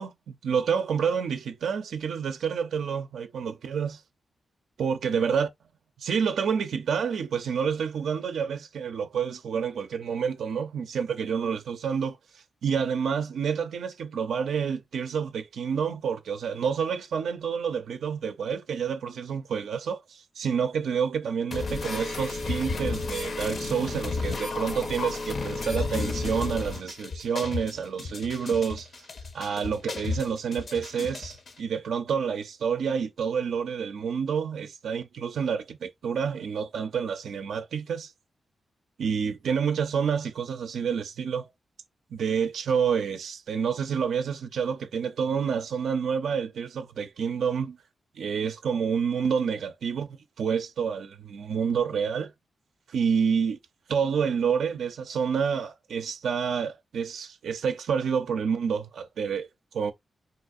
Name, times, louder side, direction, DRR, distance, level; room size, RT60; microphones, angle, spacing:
voice 1, 0.0-4.0 4.8-5.5 6.0-29.1 29.3-38.1 39.0-41.5 42.1-47.8 48.1-50.1 50.4-52.3 52.9-53.6 53.9-59.5 59.7-59.9, right 6 dB, 85° right, 0.4 m, -28 dB
sound 1, 21.5-31.5, left 3 dB, 55° left, 0.5 m, -32 dB
4.0 x 2.4 x 2.5 m
cardioid pair, 90°, 0 cm